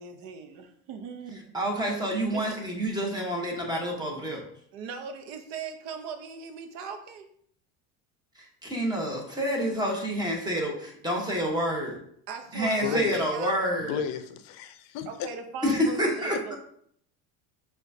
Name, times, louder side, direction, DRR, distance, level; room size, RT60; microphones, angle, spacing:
voice 1, 0.0-1.5 2.3-2.4 3.0-3.1 4.7-7.3 12.3-13.5 15.1-16.6, right 5 dB, 70° right, 7 dB, 0.7 m, -39 dB
voice 2, 1.5-4.4 8.6-12.0 12.5-14.0 15.6-16.6, equal, 10° right, 0 dB, 1.1 m, -28 dB
voice 3, 12.5-13.2 13.9-15.3 16.3-16.4, left 8 dB, 65° left, 8 dB, 0.5 m, -33 dB
6.0 x 2.4 x 2.7 m, 0.65 s
cardioid pair, 120°, 36 cm